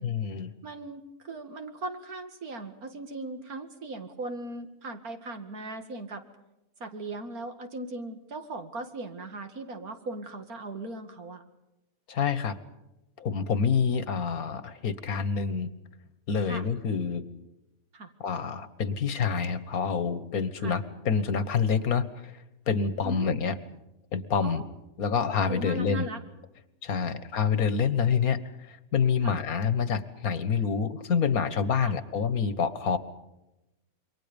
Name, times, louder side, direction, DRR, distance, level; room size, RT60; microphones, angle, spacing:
voice 1, 0.0-0.5 12.1-12.6 13.2-15.7 16.3-17.2 18.2-22.3 22.7-23.6 24.1-24.6 25.0-26.1 26.8-28.4 28.7-33.0, left 6 dB, 85° left, 14 dB, 1.8 m, -27 dB
voice 2, 0.6-6.2 6.8-11.4 16.4-16.6 17.9-18.1 20.6-20.8 23.0-23.4 24.4-24.6 25.5-26.2 27.1-27.3 29.2-29.4 31.8-32.0, right 2 dB, 90° right, 7 dB, 2.6 m, -38 dB
28.0 x 23.5 x 5.3 m, 0.93 s
omnidirectional pair, 1.5 m